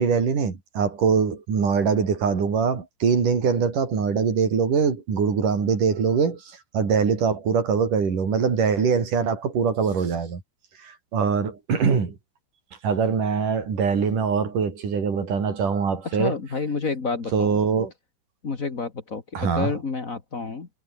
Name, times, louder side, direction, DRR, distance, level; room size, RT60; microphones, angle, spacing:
voice 1, 0.0-10.4 10.8-12.2 12.8-16.3 17.3-17.9 19.3-19.7, right 6 dB, 45° right, 5.6 m, -23 dB
voice 2, 16.1-17.6 18.4-20.7, left 4 dB, 75° left, 0.7 m, -29 dB
omnidirectional pair, 5.5 m